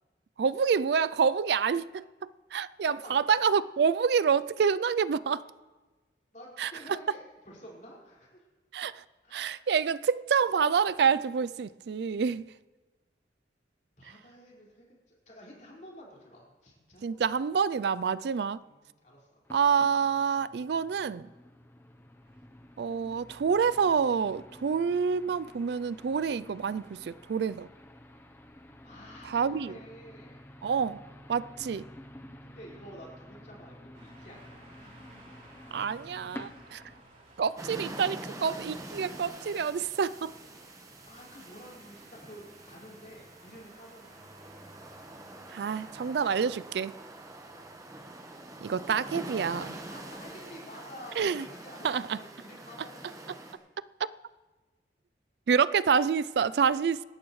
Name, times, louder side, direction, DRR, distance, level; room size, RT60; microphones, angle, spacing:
voice 1, 0.4-2.0 2.5-5.5 6.6-6.7 8.7-9.0 9.3-12.4 17.0-18.6 19.5-21.3 22.8-27.7 29.3-29.7 30.6-31.0 31.3-31.9 35.7-36.8 37.4-40.3 45.5-46.9 48.6-49.7 51.2-51.5 51.8-52.2 55.5-57.0, right 6 dB, 65° right, 0.4 m, -27 dB
voice 2, 2.8-3.3 6.3-8.5 9.2-9.6 14.0-17.3 18.6-19.5 28.8-30.5 32.4-35.1 41.1-44.3 47.5-47.6 49.9-53.5, equal, 45° left, 5.2 m, -50 dB
sound 1, 19.4-37.0, left 1 dB, 15° left, 0.7 m, -51 dB
sound 2, 33.9-50.5, right 1 dB, 45° right, 3.4 m, -57 dB
sound 3, 37.6-53.5, right 1 dB, 20° right, 1.2 m, -45 dB
27.0 x 13.0 x 3.2 m
head